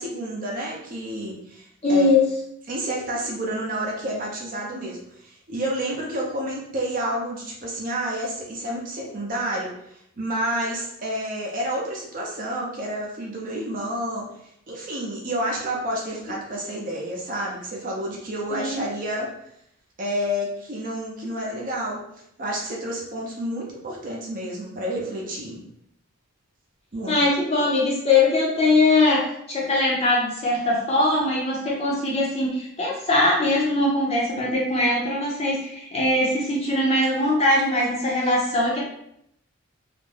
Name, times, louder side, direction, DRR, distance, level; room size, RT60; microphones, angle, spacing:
voice 1, 0.0-2.1 2.7-14.3 14.7-19.3 20.0-22.0 22.4-25.6 26.9-27.2, equal, 40° right, -3 dB, 0.6 m, -29 dB
voice 2, 1.8-2.2 18.5-18.8 27.1-38.8, left 2 dB, 30° left, -4 dB, 0.6 m, -21 dB
2.5 x 2.1 x 3.2 m, 0.74 s
head